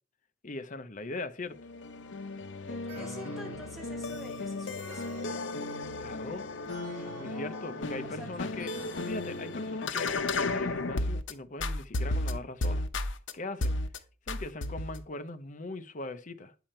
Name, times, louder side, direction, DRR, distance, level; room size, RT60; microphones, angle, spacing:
voice 1, 0.4-1.6 6.0-6.5 6.9-8.8 9.0-12.9 13.3-13.8 14.3-16.5, left 2 dB, 40° left, 0.8 m, -40 dB
sound 1, 1.5-11.3 11.6-13.3 13.6-14.0 14.3-15.0, left 2 dB, 70° left, 0.8 m, -34 dB
voice 2, 2.7-5.4 7.0-8.3, left 1 dB, ahead, 2.7 m, -48 dB
sound 2, 2.9-10.5, right 1 dB, 45° right, 4.1 m, -49 dB
8.9 x 7.1 x 4.4 m
head